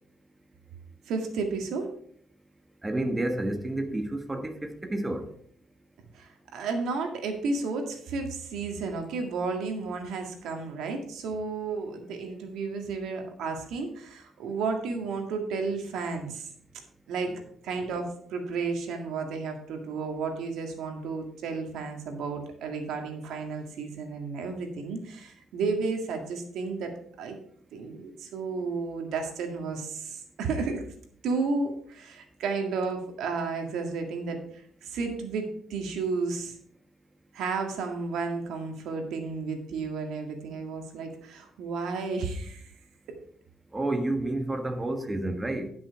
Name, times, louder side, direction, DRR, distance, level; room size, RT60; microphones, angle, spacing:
voice 1, 1.1-1.9 6.1-16.5 17.1-17.3 17.6-26.9 27.2-27.4 27.7-30.8 31.2-34.4 34.8-36.6 37.3-42.7 43.1-43.2, right 4 dB, 80° right, 1.9 m, -32 dB
voice 2, 2.8-5.3 43.7-45.7, right 1 dB, 15° right, 1.4 m, -30 dB
11.0 x 6.1 x 4.7 m
cardioid pair, 90°, 0 cm